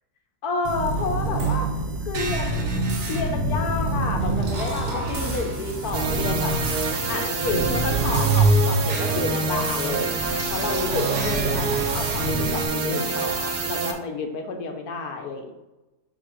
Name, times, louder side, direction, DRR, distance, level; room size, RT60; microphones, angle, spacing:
voice 1, 0.4-1.7 2.0-2.6 3.1-6.6 7.1-15.5, left 3 dB, 70° left, 4 dB, 1.3 m, -30 dB
sound 1, 0.6-12.6, right 2 dB, 50° right, 1.2 m, -27 dB
sound 2, 1.6-13.7, left 2 dB, 10° right, 1.0 m, -34 dB
sound 3, 5.9-13.9, right 5 dB, 70° right, 1.2 m, -27 dB
7.2 x 2.8 x 5.0 m, 1.1 s
omnidirectional pair, 1.8 m